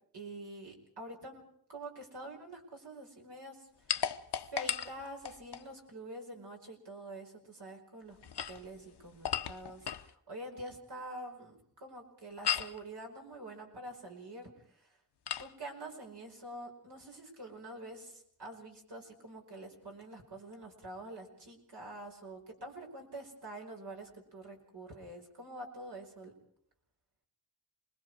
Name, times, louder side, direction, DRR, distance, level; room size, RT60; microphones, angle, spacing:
voice 1, 0.1-1.4 1.7-4.1 4.5-8.2 8.5-14.5 14.8-15.0 15.4-26.3, right 1 dB, 75° right, 1 dB, 5.0 m, -46 dB
sound 1, 3.9-5.7 8.1-10.1 12.4-12.8 15.3-15.5, left 8 dB, 80° left, 0.9 m, -36 dB
27.5 x 21.0 x 4.8 m, 0.66 s
wide cardioid pair, 110°, 40 cm